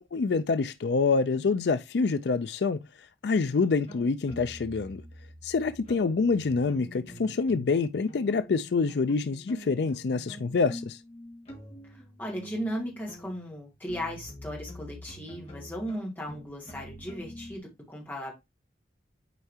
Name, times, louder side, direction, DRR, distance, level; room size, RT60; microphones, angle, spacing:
voice 1, 0.1-2.8 3.2-5.0 5.4-11.0, left 4 dB, 70° left, 0.4 m, -26 dB
sound 1, 3.7-7.8 8.1-17.6, equal, 35° left, 2.2 m, -46 dB
voice 2, 11.9-18.3, equal, 10° left, 2.6 m, -36 dB
8.2 x 4.5 x 2.8 m
head